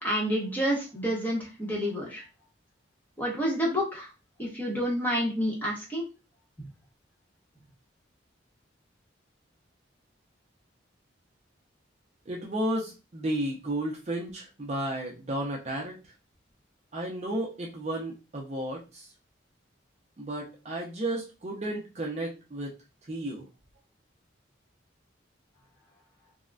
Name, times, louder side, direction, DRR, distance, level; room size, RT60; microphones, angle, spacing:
voice 1, 0.0-2.2 3.2-4.1 4.4-6.0, equal, 10° left, -3 dB, 0.9 m, -29 dB
voice 2, 12.3-15.9 16.9-19.1 20.2-22.7 23.1-23.4, right 1 dB, 35° right, -1 dB, 0.5 m, -33 dB
3.7 x 2.1 x 2.3 m, 0.30 s
head